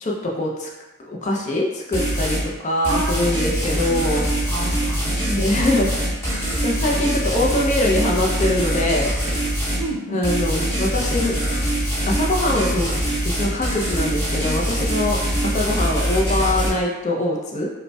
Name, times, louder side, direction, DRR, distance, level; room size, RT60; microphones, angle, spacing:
voice 1, 0.0-0.7 1.0-2.4 2.6-4.2 5.3-5.9 6.6-9.1 10.1-11.4 12.1-13.0 13.2-17.7, left 1 dB, 30° left, -2 dB, 0.5 m, -23 dB
sound 1, 1.9-2.5 2.8-9.8 10.2-16.7, right 1 dB, 10° left, 0.9 m, -23 dB
voice 2, 2.9-3.2 3.5-5.7 9.8-10.2, right 1 dB, 70° right, -2 dB, 0.7 m, -31 dB
5.0 x 2.1 x 2.2 m, 1.1 s
head